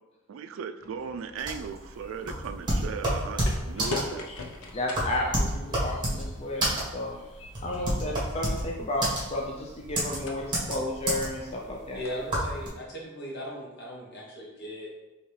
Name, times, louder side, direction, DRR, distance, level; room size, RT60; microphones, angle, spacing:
voice 1, 0.3-4.3, right 6 dB, 75° right, 9 dB, 0.3 m, -37 dB
sound 1, 0.8-11.7, left 2 dB, 90° left, 0.6 m, -44 dB
sound 2, 1.4-12.7, right 1 dB, 20° right, 1.4 m, -29 dB
voice 2, 4.7-12.0, left 1 dB, 30° left, -1 dB, 0.5 m, -33 dB
voice 3, 11.9-14.9, equal, 55° left, -3 dB, 1.2 m, -38 dB
5.5 x 2.9 x 3.2 m, 1.1 s
head